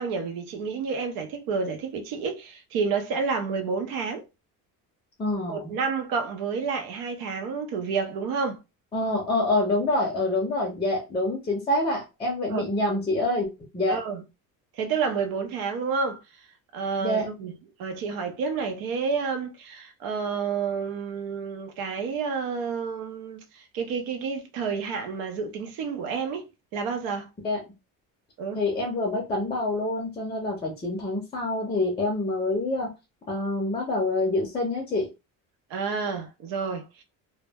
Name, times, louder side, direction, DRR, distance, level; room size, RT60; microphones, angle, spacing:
voice 1, 0.0-4.2 5.5-8.6 12.5-12.7 13.9-14.2 14.7-16.2 16.7-17.5 17.8-27.3 28.4-28.6 35.7-37.0, right 5 dB, 85° right, 0.7 m, -30 dB
voice 2, 5.2-5.7 8.9-13.5 13.7-14.0 17.0-17.3 27.4-27.6 28.5-32.9 33.3-35.1, left 2 dB, 15° left, 0.5 m, -26 dB
2.1 x 2.0 x 3.3 m
cardioid pair, 175°, 34 cm